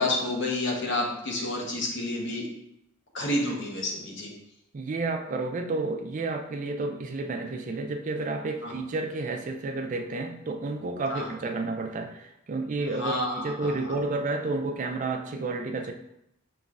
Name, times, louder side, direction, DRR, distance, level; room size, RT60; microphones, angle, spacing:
voice 1, 0.0-2.4 3.1-4.3 8.6-8.7 11.1-11.3 13.0-13.9, left 1 dB, 60° left, -1 dB, 0.8 m, -29 dB
voice 2, 4.7-15.9, right 3 dB, 35° right, 5 dB, 0.3 m, -31 dB
5.1 x 3.1 x 2.3 m, 0.81 s
head